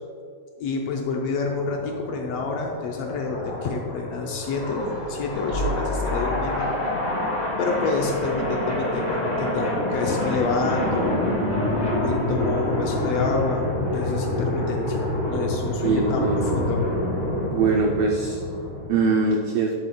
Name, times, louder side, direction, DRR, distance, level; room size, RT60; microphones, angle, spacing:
voice 1, 0.6-6.9 7.6-11.2 12.0-13.7 13.9-15.0 15.3-16.8, left 4 dB, 75° left, 1 dB, 1.6 m, -28 dB
sound 1, 1.3-18.9, left 1 dB, 25° left, 1.1 m, -27 dB
sound 2, 4.3-7.0 7.9-8.9, left 1 dB, 40° right, 2.5 m, -34 dB
voice 2, 15.8-16.5 17.5-18.4 18.9-19.7, right 4 dB, 85° right, 0 dB, 1.3 m, -22 dB
9.6 x 7.9 x 2.3 m, 2.2 s
omnidirectional pair, 3.3 m